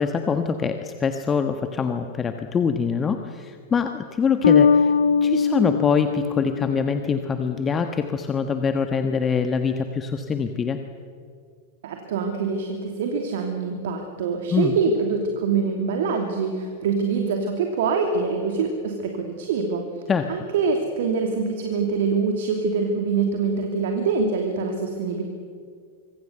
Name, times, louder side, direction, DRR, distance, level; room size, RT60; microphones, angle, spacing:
voice 1, 0.0-4.9 5.2-10.8 14.5-14.7 20.1-20.3, left 6 dB, 20° left, 7 dB, 1.4 m, -24 dB
Bass guitar, 4.4-7.5, left 6 dB, 65° left, 0.7 m, -21 dB
voice 2, 11.8-19.8 20.3-25.2, right 5 dB, 55° right, 3 dB, 2.9 m, -24 dB
26.0 x 24.5 x 7.0 m, 2.2 s
figure-of-eight pair, 90°, 0 cm